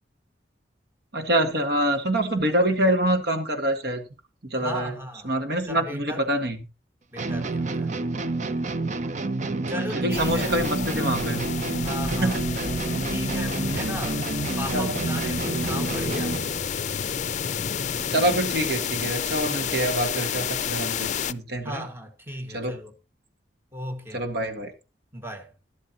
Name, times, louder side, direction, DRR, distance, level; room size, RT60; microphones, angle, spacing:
voice 1, 1.1-4.0 4.5-5.0 5.2-6.6 10.0-11.4 12.1-12.4 14.7-15.0 18.1-21.9 22.5-22.8 24.1-24.7, right 1 dB, 65° right, 1.9 m, -25 dB
voice 2, 4.6-5.3 5.6-6.2 7.1-8.0 9.7-10.5 11.8-12.4 13.1-14.3 14.6-16.7 21.6-22.9 23.7-24.2 25.1-25.5, equal, 15° right, 1.9 m, -36 dB
sound 1, 7.2-16.6, right 3 dB, 45° right, 0.7 m, -29 dB
sound 2, 10.1-21.3, left 7 dB, 45° left, 0.5 m, -30 dB
12.5 x 12.0 x 3.0 m
head